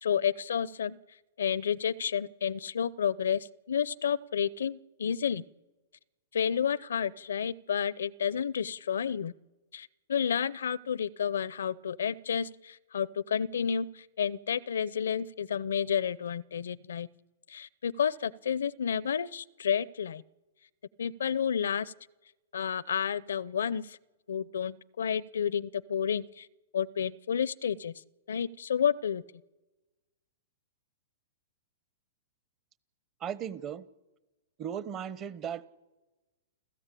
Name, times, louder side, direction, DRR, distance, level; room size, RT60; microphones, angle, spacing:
voice 1, 0.0-1.0 1.4-5.4 6.3-9.3 9.7-17.1 17.5-20.2 21.0-21.9 22.5-24.0 24.3-26.5 26.7-27.9 28.3-29.2, left 8 dB, 80° left, 0.6 m, -30 dB
voice 2, 33.2-33.9 34.6-35.7, right 8 dB, 30° right, 1.0 m, -36 dB
30.0 x 14.0 x 8.5 m
hypercardioid pair, 125°, 0 cm